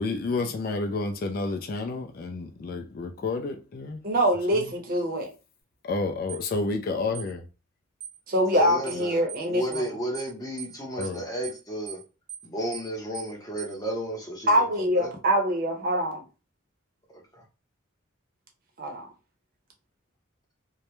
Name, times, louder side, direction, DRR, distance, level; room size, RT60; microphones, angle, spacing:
voice 1, 0.0-4.0 4.5-4.7 5.8-7.4 11.0-11.2, left 3 dB, 45° left, 0.3 m, -30 dB
voice 2, 4.0-5.3 8.3-9.9 14.5-16.2 18.8-19.1, equal, 45° right, 0.6 m, -24 dB
sound 1, 6.3-6.5 7.1-7.3 8.0-8.2 8.9-9.0 9.3-9.5 9.7-9.9 10.1-10.3 10.6-10.7 11.0-11.2 11.4-11.6 11.9-12.0 12.3-12.5 12.7-12.9 13.1-13.3 13.6-13.7, right 9 dB, 80° right, 0.7 m, -40 dB
voice 3, 8.5-12.0 12.4-14.5 14.8-15.1, right 1 dB, 15° left, 0.7 m, -33 dB
2.2 x 2.0 x 2.9 m
head